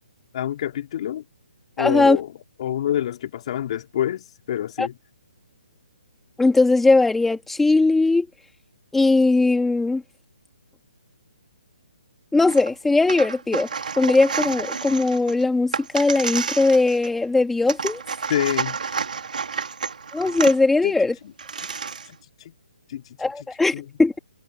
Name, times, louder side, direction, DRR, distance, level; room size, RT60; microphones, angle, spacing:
voice 1, 0.3-1.2 1.8-2.3 2.6-5.0 18.3-18.8 20.8-21.0 21.2-21.3 22.1-22.5 22.9-23.0 23.7-23.8, left 11 dB, 45° left, 4.1 m, -27 dB
voice 2, 1.8-2.2 4.8-4.9 6.4-8.3 8.9-10.0 12.3-13.7 14.0-18.0 20.1-21.1 23.2-24.2, left 3 dB, 5° left, 2.8 m, -19 dB
sound 1, 12.5-12.7 13.0-17.3 17.7-20.6 21.1-21.2 21.4-22.1, right 5 dB, 75° right, 3.8 m, -30 dB
hypercardioid pair, 150°, 5 cm